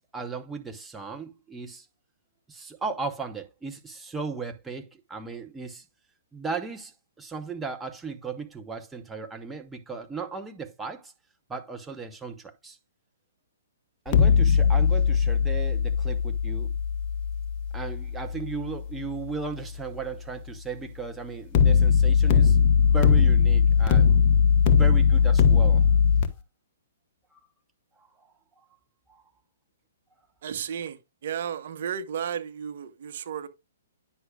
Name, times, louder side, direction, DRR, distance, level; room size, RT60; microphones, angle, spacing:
voice 1, 0.0-1.9 2.5-5.8 6.3-6.9 7.2-11.1 11.5-12.8 14.0-16.7 17.7-24.1 24.6-25.8 27.3-27.4 28.0-28.1 29.1-29.2, right 4 dB, 10° right, 0.9 m, -36 dB
sound 1, 14.1-19.1 21.5-26.3, left 6 dB, 35° left, 1.0 m, -20 dB
voice 2, 30.4-33.5, right 8 dB, 55° right, 1.0 m, -33 dB
9.7 x 6.3 x 2.3 m
hypercardioid pair, 125°, 0 cm